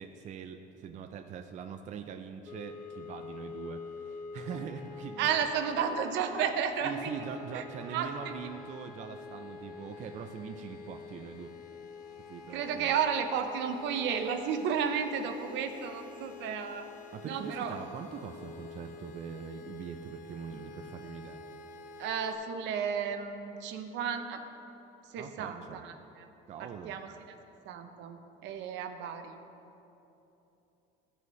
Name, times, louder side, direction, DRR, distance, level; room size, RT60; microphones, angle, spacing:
voice 1, 0.0-5.4 6.8-11.6 12.3-12.9 17.1-21.4 25.2-25.8 26.5-26.9, right 7 dB, 40° right, 6 dB, 0.4 m, -42 dB
sound 1, 2.5-22.4, left 4 dB, 45° left, 0.8 m, -47 dB
voice 2, 5.2-7.1 7.5-8.3 12.5-16.9 17.2-17.8 22.0-24.4 25.0-26.3 26.6-27.4 27.6-29.4, right 7 dB, 70° right, 7 dB, 0.7 m, -33 dB
15.5 x 5.5 x 3.1 m, 3.0 s
cardioid pair, 140°, 19 cm